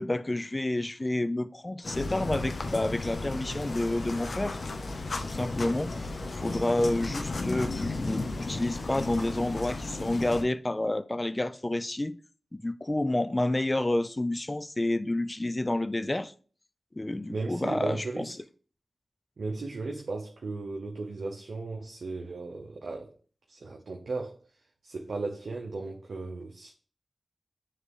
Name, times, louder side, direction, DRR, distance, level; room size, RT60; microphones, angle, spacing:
voice 1, 0.0-4.6 5.2-6.1 6.4-12.2 12.5-16.3 17.0-18.3, left 1 dB, 30° left, 0.5 m, -29 dB
sound 1, 1.8-10.4, left 3 dB, 70° left, 0.9 m, -34 dB
voice 2, 17.3-18.3 19.4-23.1 23.5-24.4 24.8-26.7, right 3 dB, 80° right, 0.8 m, -36 dB
7.4 x 3.3 x 4.8 m
cardioid pair, 45°, 0 cm